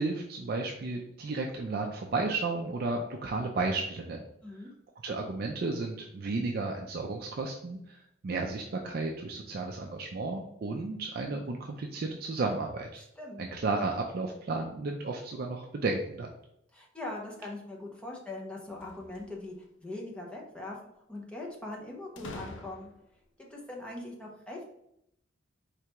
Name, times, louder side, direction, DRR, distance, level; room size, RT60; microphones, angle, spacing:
voice 1, 0.0-4.2 5.0-13.0 13.4-16.3, right 3 dB, 50° right, 1 dB, 0.4 m, -33 dB
voice 2, 4.4-4.7 13.0-13.4 16.7-20.8 21.1-22.9 23.4-24.7, left 2 dB, 5° left, -2 dB, 0.7 m, -41 dB
sound 1, 18.6-19.7 22.2-23.2, left 2 dB, 65° left, 0.5 m, -46 dB
4.7 x 3.3 x 2.9 m, 0.77 s
head